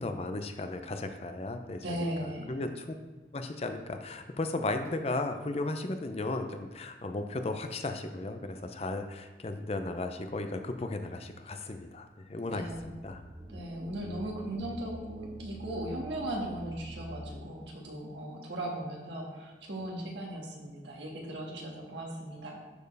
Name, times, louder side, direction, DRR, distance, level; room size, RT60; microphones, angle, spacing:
voice 1, 0.0-2.0 2.5-2.9 3.3-12.7 13.0-13.2, left 2 dB, 35° left, 7 dB, 0.5 m, -35 dB
voice 2, 1.8-2.6 12.5-12.9 13.5-22.6, right 1 dB, 90° right, -2 dB, 1.8 m, -38 dB
sound 1, 12.5-17.6, equal, 10° right, 1.3 m, -46 dB
12.0 x 4.4 x 3.3 m, 1.3 s
head